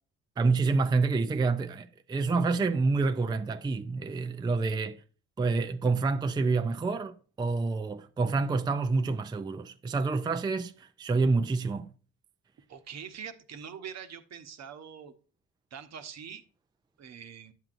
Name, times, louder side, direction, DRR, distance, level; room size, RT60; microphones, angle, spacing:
voice 1, 0.4-5.0 5.4-11.9, right 3 dB, 15° right, 0.4 m, -28 dB
voice 2, 12.7-15.1 15.7-16.4 17.0-17.5, right 7 dB, 60° right, 1.0 m, -43 dB
9.0 x 7.5 x 2.5 m
cardioid pair, 90°, 30 cm